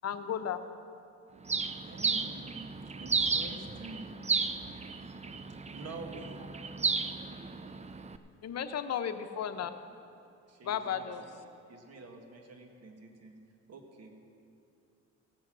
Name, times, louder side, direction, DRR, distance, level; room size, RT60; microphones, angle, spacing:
voice 1, 0.0-0.6 8.4-9.7 10.6-11.2, left 8 dB, 60° left, 9 dB, 0.8 m, -34 dB
Bird, 1.5-8.2, right 4 dB, 20° right, 0.6 m, -34 dB
voice 2, 1.8-4.3 5.7-6.7 10.5-11.4 11.7-13.3 13.7-14.1, right 2 dB, 55° right, 3 dB, 1.9 m, -47 dB
16.5 x 8.6 x 6.1 m, 2.6 s
cardioid pair, 90°, 30 cm